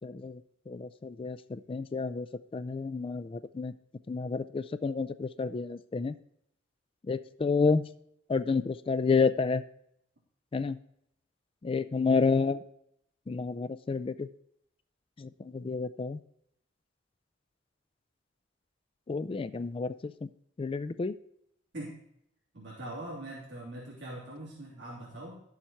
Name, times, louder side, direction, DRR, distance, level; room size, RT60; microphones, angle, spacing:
voice 1, 0.0-0.4 0.7-2.3 2.5-3.7 4.1-6.1 7.1-7.8 8.3-9.6 10.5-10.8 11.6-12.6 13.3-14.3 15.2-16.2 19.1-20.3 20.6-21.1, left 4 dB, 30° left, 13 dB, 0.3 m, -30 dB
voice 2, 22.5-25.4, right 1 dB, 65° right, -8 dB, 3.3 m, -42 dB
12.0 x 7.2 x 4.4 m, 0.75 s
head